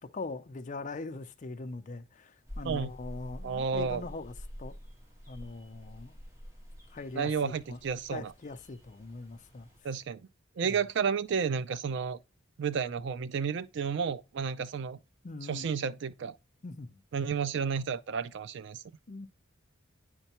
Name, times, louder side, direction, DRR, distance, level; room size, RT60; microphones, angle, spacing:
voice 1, 0.0-4.3 4.6-4.8 5.3-6.2 6.9-7.8 8.1-9.7 10.6-10.7 15.2-15.7 16.6-17.0 19.1-19.3, left 3 dB, 40° left, 0.5 m, -41 dB
sound 1, 2.5-9.8, equal, 15° right, 1.3 m, -48 dB
voice 2, 3.4-4.0 7.1-8.3 9.8-10.2 10.6-12.2 12.6-15.0 15.5-16.4 17.1-18.8, right 6 dB, 60° right, 0.4 m, -31 dB
9.0 x 4.5 x 2.9 m
head